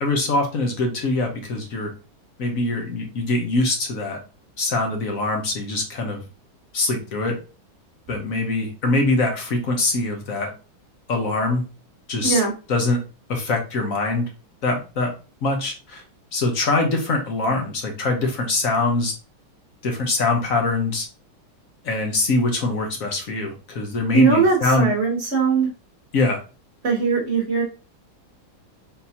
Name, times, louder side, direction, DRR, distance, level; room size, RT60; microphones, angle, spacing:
voice 1, 0.0-1.9 2.4-4.2 4.6-6.2 6.7-7.4 8.1-10.5 11.1-11.6 12.1-12.4 12.7-13.0 13.3-14.2 14.6-15.1 15.4-16.0 16.3-19.1 19.8-21.1 21.8-24.9 26.1-26.4, left 2 dB, 55° left, 3 dB, 1.1 m, -23 dB
voice 2, 12.2-12.5 24.1-25.7 26.8-27.6, right 5 dB, 40° right, 0 dB, 1.2 m, -20 dB
4.2 x 3.8 x 2.8 m, 0.33 s
omnidirectional pair, 2.2 m